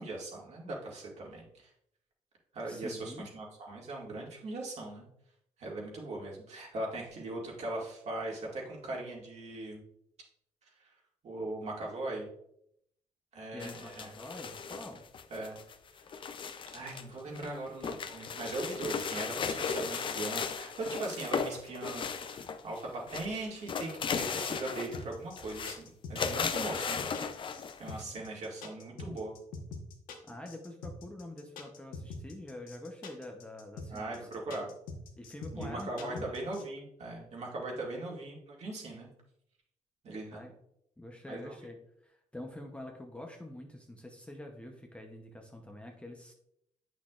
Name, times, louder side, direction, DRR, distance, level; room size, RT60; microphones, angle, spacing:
voice 1, 0.0-1.7 2.5-5.1 5.6-9.8 10.6-10.9 11.2-12.3 13.3-14.1 15.3-15.6 16.7-29.4 33.9-34.7 35.5-39.1 40.0-40.4 41.3-41.5, right 2 dB, 50° right, -2 dB, 2.1 m, -40 dB
voice 2, 2.6-3.3 13.5-15.0 30.3-34.6 35.2-36.3 40.3-40.5 41.0-46.3, left 1 dB, 10° left, 2 dB, 0.7 m, -46 dB
sound 1, 13.6-17.0 17.3-22.8 23.1-25.1 25.4-25.8 26.2-28.0, left 6 dB, 35° left, 0.5 m, -36 dB
sound 2, 24.9-36.6, left 4 dB, 90° left, 1.2 m, -43 dB
8.4 x 6.0 x 2.4 m, 0.74 s
cardioid pair, 125°, 14 cm